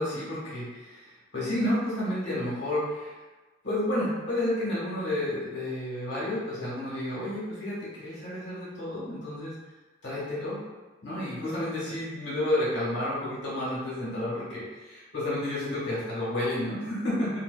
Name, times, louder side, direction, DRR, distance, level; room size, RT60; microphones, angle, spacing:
voice 1, 0.0-3.1 3.6-9.5 10.0-10.6 11.0-17.4, left 1 dB, 75° left, -8 dB, 1.3 m, -31 dB
4.4 x 2.3 x 2.3 m, 1.2 s
head